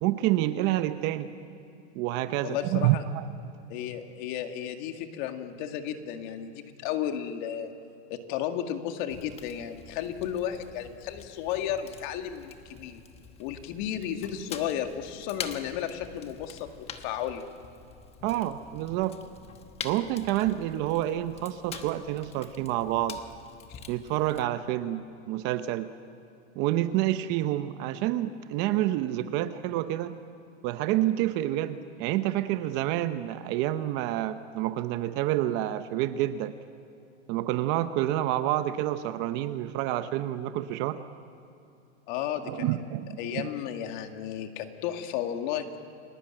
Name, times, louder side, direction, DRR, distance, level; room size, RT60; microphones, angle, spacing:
voice 1, 0.0-1.3 1.9-3.2 18.2-19.2 19.8-23.2 23.9-25.9 26.6-30.2 30.6-36.5 37.3-41.0 42.4-43.5, right 14 dB, 30° right, 11 dB, 0.8 m, -28 dB
voice 2, 2.4-3.0 3.7-7.7 8.1-13.0 13.4-17.4 23.7-23.8 42.1-42.8 43.2-45.8, left 10 dB, 45° left, 6 dB, 2.0 m, -33 dB
Fire, 9.1-24.4, left 7 dB, 15° left, 1.2 m, -46 dB
29.5 x 19.0 x 8.9 m, 2.7 s
supercardioid pair, 155°, 34 cm